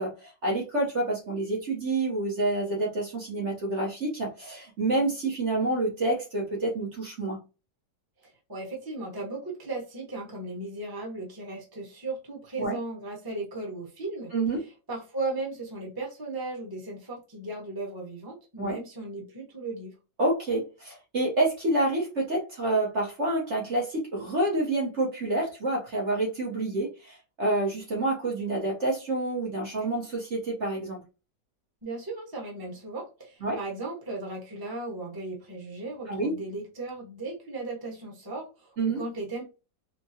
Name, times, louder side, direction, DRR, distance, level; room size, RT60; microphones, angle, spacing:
voice 1, 0.0-7.4 12.6-12.8 14.3-14.6 18.6-18.8 20.2-31.0 33.4-33.6 36.1-36.3 38.8-39.0, right 2 dB, 45° right, -3 dB, 1.2 m, -28 dB
voice 2, 8.2-19.9 31.8-39.4, right 2 dB, 15° right, -1 dB, 1.0 m, -36 dB
4.5 x 2.2 x 2.8 m, 0.30 s
omnidirectional pair, 1.8 m